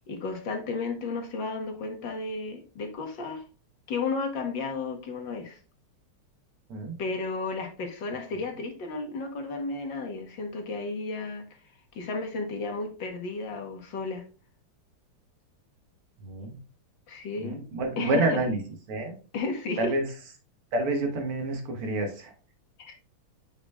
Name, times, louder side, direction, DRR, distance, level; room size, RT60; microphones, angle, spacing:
voice 1, 0.1-3.4 3.9-5.6 7.0-11.4 11.9-14.2 17.1-17.7 18.0-18.4 19.3-19.9 22.8-22.9, left 3 dB, 60° left, 3 dB, 1.7 m, -33 dB
voice 2, 16.2-16.5 17.4-18.6 18.9-19.1 19.8-20.1 20.7-22.3, right 2 dB, 80° right, 3 dB, 2.3 m, -28 dB
8.7 x 5.0 x 2.3 m, 0.36 s
omnidirectional pair, 2.4 m